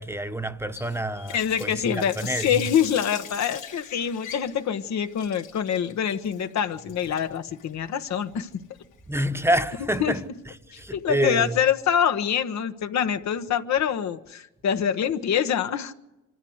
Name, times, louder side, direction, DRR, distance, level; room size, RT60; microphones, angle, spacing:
voice 1, 0.0-2.6 9.1-11.6, right 1 dB, 10° right, 1.0 m, -28 dB
Water tap faucet, 0.8-9.7, left 8 dB, 85° left, 3.1 m, -43 dB
voice 2, 1.3-8.6 10.0-10.1 10.7-15.9, left 8 dB, 65° left, 1.2 m, -25 dB
25.0 x 14.0 x 8.0 m
cardioid pair, 90°, 30 cm